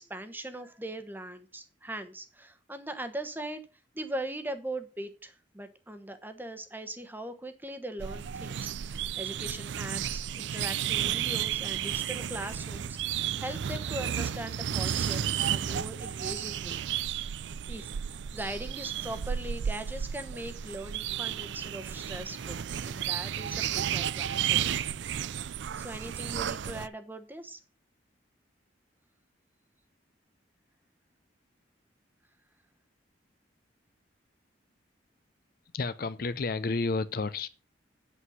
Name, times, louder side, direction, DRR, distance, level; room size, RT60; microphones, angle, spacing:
voice 1, 0.0-3.6 3.9-16.8 17.7-24.8 25.8-27.6, right 1 dB, 10° right, 1.0 m, -40 dB
sound 1, 8.0-26.9, right 9 dB, 70° right, 0.4 m, -33 dB
voice 2, 35.7-37.5, left 3 dB, 50° left, 0.5 m, -31 dB
8.5 x 7.8 x 5.6 m
head